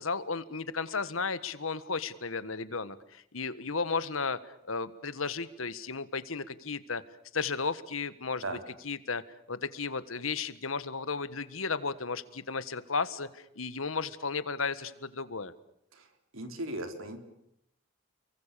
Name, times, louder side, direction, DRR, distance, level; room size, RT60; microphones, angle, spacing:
voice 1, 0.0-7.0 7.3-9.2 9.5-15.5, left 4 dB, 90° left, 14 dB, 1.6 m, -34 dB
voice 2, 16.3-17.2, right 1 dB, 90° right, 7 dB, 3.9 m, -37 dB
30.0 x 23.5 x 6.9 m, 0.78 s
head